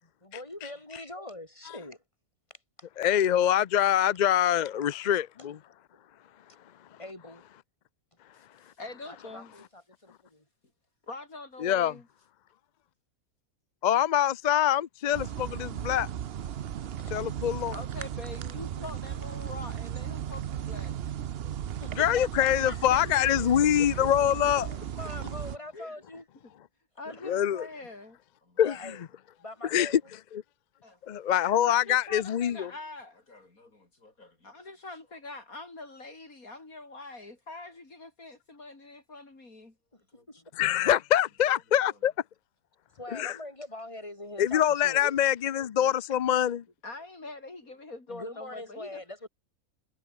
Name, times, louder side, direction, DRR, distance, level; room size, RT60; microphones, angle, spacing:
voice 1, 0.0-2.0 2.5-2.6 7.0-7.4 9.1-10.4 17.0-17.2 21.8-23.2 25.0-26.3 27.1-27.2 28.6-29.0 29.4-30.0 42.9-45.1 48.1-49.3, left 1 dB, 20° left, 4.7 m, -43 dB
voice 2, 3.0-5.6 11.6-11.9 13.8-16.1 17.1-17.7 22.0-24.7 27.3-27.7 28.6-28.7 29.7-29.9 31.1-32.7 40.6-42.1 43.1-43.4 44.4-46.6, left 10 dB, 60° left, 0.4 m, -24 dB
voice 3, 8.3-9.5 11.0-12.1 16.8-16.9 17.7-21.0 21.4-22.0 22.7-24.4 25.2-25.3 25.7-26.0 27.0-28.6 30.8-31.0 31.7-39.8 41.5-41.6 41.9-42.0 43.1-43.3 45.0-45.1 45.6-46.0 46.8-49.0, left 2 dB, 90° left, 5.3 m, -45 dB
sound 1, 15.1-25.6, right 10 dB, 55° right, 0.8 m, -36 dB
omnidirectional pair, 1.4 m